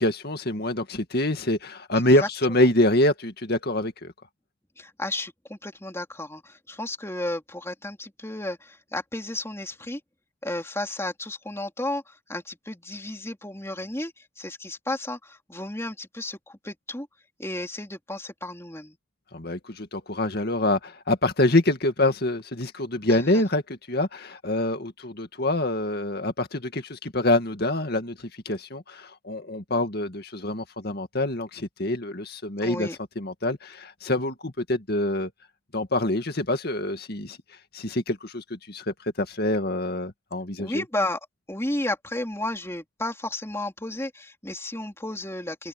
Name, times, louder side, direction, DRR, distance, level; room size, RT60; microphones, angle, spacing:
voice 1, 0.0-4.1 19.3-32.9 33.2-35.3 35.7-37.4 37.7-40.8, left 1 dB, 50° left, 2.2 m, -26 dB
voice 2, 1.9-2.3 4.8-10.0 10.4-17.1 17.4-19.0 23.1-23.4 32.6-33.0 40.6-41.2 41.5-45.7, left 1 dB, 15° left, 3.3 m, -33 dB
head